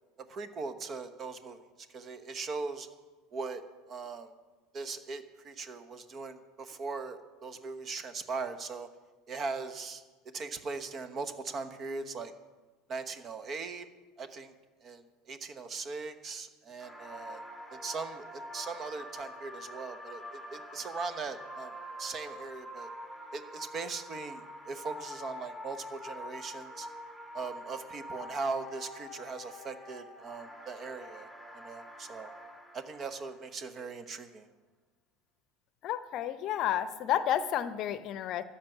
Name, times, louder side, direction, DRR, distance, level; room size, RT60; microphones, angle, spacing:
voice 1, 0.3-1.6 1.9-2.9 3.3-3.6 3.9-4.3 4.7-8.9 9.3-10.0 10.3-12.3 12.9-13.9 14.2-14.5 14.8-17.4 17.7-21.7 22.0-22.9 23.3-26.9 27.3-32.3 32.7-34.5, right 4 dB, 40° right, 11 dB, 1.1 m, -39 dB
sound 1, 16.8-33.4 33.8-33.9, left 1 dB, 5° right, 1.9 m, -46 dB
voice 2, 35.8-38.4, left 10 dB, 50° left, 14 dB, 0.7 m, -31 dB
13.0 x 5.9 x 9.3 m, 1.3 s
hypercardioid pair, 75°, 0 cm